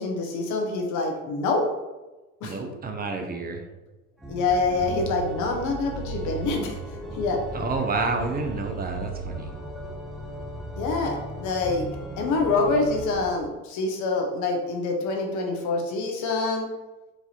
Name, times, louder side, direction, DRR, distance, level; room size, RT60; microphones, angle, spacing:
voice 1, 0.0-1.6 2.4-2.5 4.3-6.8 7.2-7.4 10.8-11.9 12.2-16.6, left 3 dB, 75° left, 1 dB, 1.1 m, -26 dB
voice 2, 2.4-3.6 7.5-9.5, right 3 dB, 30° right, 4 dB, 0.7 m, -29 dB
Organ, 4.2-13.4, right 2 dB, ahead, 1.0 m, -36 dB
4.6 x 2.7 x 4.3 m, 1.1 s
cardioid pair, 110°, 30 cm